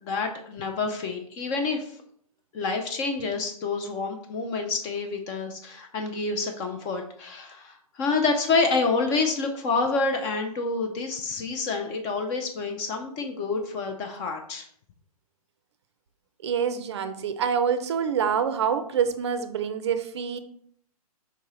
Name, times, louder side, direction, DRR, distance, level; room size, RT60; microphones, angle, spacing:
voice 1, 0.0-1.9 2.5-14.7, left 4 dB, 20° left, 4 dB, 0.4 m, -28 dB
voice 2, 16.4-20.4, right 7 dB, 45° right, 10 dB, 0.5 m, -26 dB
4.6 x 3.5 x 3.0 m, 0.62 s
figure-of-eight pair, 120°, 19 cm